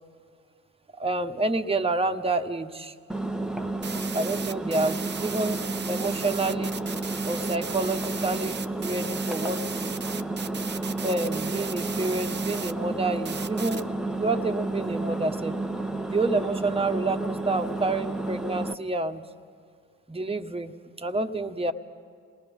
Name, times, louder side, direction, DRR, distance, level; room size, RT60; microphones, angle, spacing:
voice 1, 1.0-2.9 3.6-3.7 4.1-5.6 5.9-6.8 7.3-9.6 11.0-15.6 16.1-19.2 20.1-21.7, right 2 dB, 20° right, 6 dB, 1.3 m, -28 dB
Engine, 3.1-18.7, right 2 dB, ahead, 0.8 m, -31 dB
sound 1, 3.8-12.7 13.3-13.8, right 6 dB, 35° right, 0.7 m, -36 dB
28.0 x 20.0 x 5.4 m, 2.3 s
supercardioid pair, 55°, 32 cm